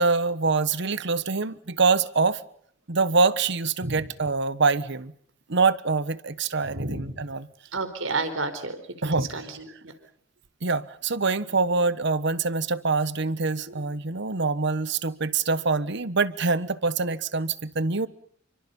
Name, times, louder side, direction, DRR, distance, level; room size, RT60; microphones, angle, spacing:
voice 1, 0.0-2.4 2.9-5.1 5.5-7.5 9.0-9.2 10.6-18.1, right 4 dB, 60° right, 1.3 m, -25 dB
voice 2, 6.6-7.2 7.7-9.9, right 3 dB, 85° right, 4.5 m, -31 dB
28.5 x 24.5 x 5.5 m
head